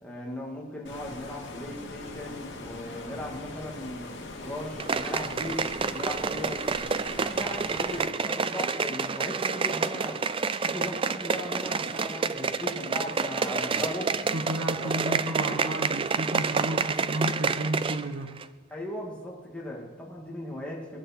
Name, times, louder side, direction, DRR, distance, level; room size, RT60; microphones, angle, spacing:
voice 1, 0.0-4.1 4.4-5.6 5.9-6.6 7.2-10.2 10.6-14.1 14.7-15.6 18.7-21.0, left 1 dB, 5° left, -3 dB, 2.3 m, -38 dB
Stream, 0.8-8.0, left 2 dB, 55° left, 2.5 m, -41 dB
sound 1, 4.8-18.1 18.4-18.5, right 5 dB, 25° right, 0.4 m, -29 dB
voice 2, 14.3-18.3, right 1 dB, 75° right, 4 dB, 1.1 m, -32 dB
23.0 x 10.0 x 4.4 m, 1.3 s
head